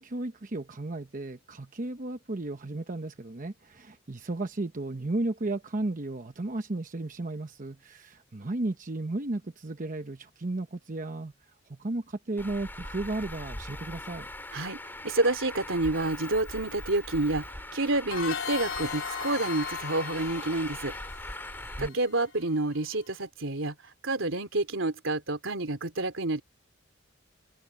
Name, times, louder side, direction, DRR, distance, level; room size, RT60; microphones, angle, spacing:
voice 1, 0.0-11.3 11.8-14.3 21.7-21.9, right 2 dB, 45° right, 0.9 m, -34 dB
Traffic noise roadway noise, 12.4-21.9, left 1 dB, 10° left, 4.8 m, -40 dB
voice 2, 15.0-20.9 21.8-23.7 24.0-26.4, right 2 dB, 85° right, 3.2 m, -29 dB
sound 1, 18.1-22.6, left 7 dB, 80° left, 3.8 m, -38 dB
head